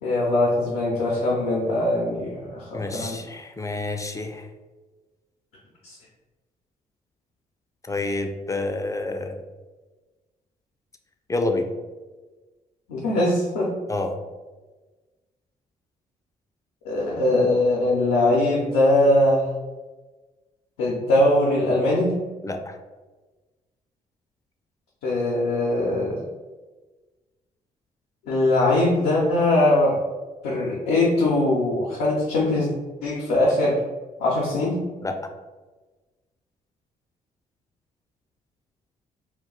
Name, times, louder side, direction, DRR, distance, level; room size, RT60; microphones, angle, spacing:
voice 1, 0.0-3.2 5.8-6.0 12.9-13.7 16.8-19.5 20.8-22.1 25.0-26.2 28.3-30.0 30.4-32.7 33.0-33.8 34.2-34.8, left 1 dB, 85° left, -5 dB, 0.5 m, -21 dB
voice 2, 2.7-4.4 7.9-9.4 11.3-11.7 13.9-14.1 22.4-22.8 35.0-35.1, left 2 dB, 20° left, 5 dB, 0.4 m, -28 dB
2.3 x 2.2 x 3.7 m, 1.3 s
hypercardioid pair, 50°, 17 cm